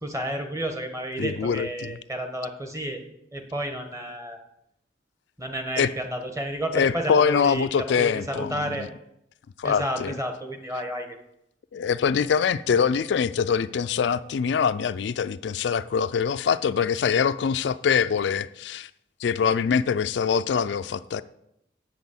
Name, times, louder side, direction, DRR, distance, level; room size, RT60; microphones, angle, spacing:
voice 1, 0.0-3.0 3.3-4.4 5.4-8.9 9.6-11.2, right 1 dB, 15° right, 1.1 m, -31 dB
voice 2, 1.2-2.0 5.8-5.9 6.7-8.7 9.6-10.1 11.7-18.9 19.2-21.2, left 6 dB, 65° left, 0.3 m, -24 dB
8.5 x 6.1 x 7.1 m
head